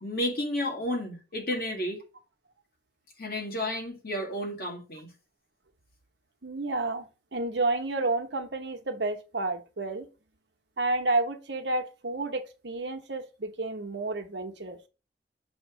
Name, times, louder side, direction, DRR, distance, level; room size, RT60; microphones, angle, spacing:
voice 1, 0.0-2.0 3.2-5.1, left 1 dB, 55° left, 1.9 m, -32 dB
voice 2, 6.4-7.1 7.3-10.1 10.8-14.8, right 2 dB, 70° right, 1.0 m, -30 dB
7.1 x 3.1 x 4.9 m
head